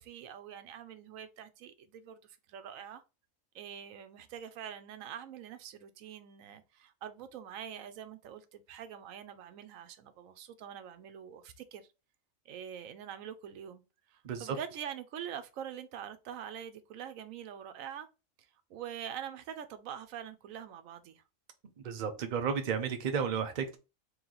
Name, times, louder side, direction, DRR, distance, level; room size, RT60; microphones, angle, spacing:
voice 1, 0.0-3.0 3.5-11.9 12.5-13.8 14.1-18.1 18.7-21.2, right 9 dB, 85° right, 1.0 m, -44 dB
voice 2, 14.2-14.6 21.8-23.8, right 6 dB, 45° right, 0.6 m, -32 dB
3.1 x 3.1 x 3.8 m
omnidirectional pair, 1.4 m